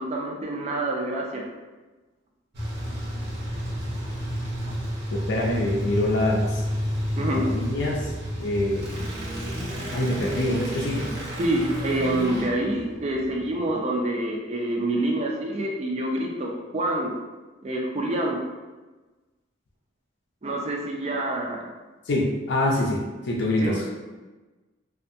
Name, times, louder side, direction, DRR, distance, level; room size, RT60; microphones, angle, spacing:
voice 1, 0.0-1.5 7.2-7.4 11.4-17.1 17.6-18.4 20.4-21.7 23.6-23.8, right 1 dB, 35° right, 0 dB, 0.4 m, -27 dB
sound 1, 2.5-13.7, equal, 55° right, 0.8 m, -30 dB
voice 2, 5.3-6.6 7.3-8.1 8.4-8.9 9.9-11.1 22.1-23.9, left 1 dB, 60° left, -2 dB, 0.4 m, -25 dB
2.6 x 2.3 x 2.6 m, 1.2 s
head